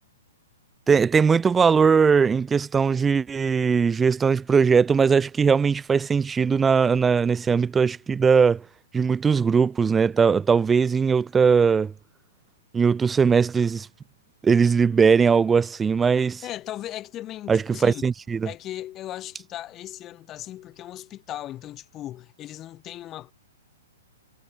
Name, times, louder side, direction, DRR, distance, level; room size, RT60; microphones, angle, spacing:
voice 1, 0.9-8.6 8.9-11.9 12.7-13.9 14.4-16.4 17.5-18.5, right 6 dB, 10° right, 0.9 m, -20 dB
voice 2, 16.4-18.1 18.4-23.3, left 13 dB, 25° left, 6.5 m, -37 dB
figure-of-eight pair, 115°, 0 cm